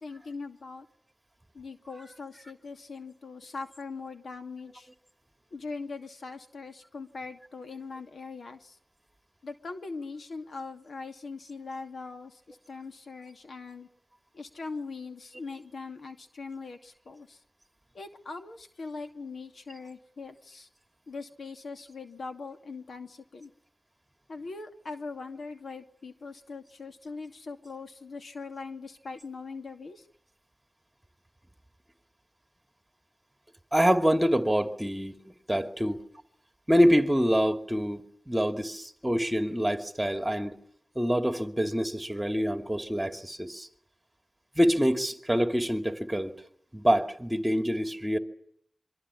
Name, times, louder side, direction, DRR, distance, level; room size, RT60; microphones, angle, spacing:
voice 1, 0.0-0.9 1.5-4.9 5.5-8.8 9.4-13.9 14.3-17.4 17.9-20.7 21.1-23.5 24.3-30.0, left 4 dB, 85° left, 2.5 m, -41 dB
voice 2, 33.7-36.0 36.7-40.6 41.0-43.7 44.6-46.4 46.7-48.2, equal, 10° right, 2.7 m, -26 dB
27.5 x 24.5 x 8.6 m
wide cardioid pair, 110°, 0 cm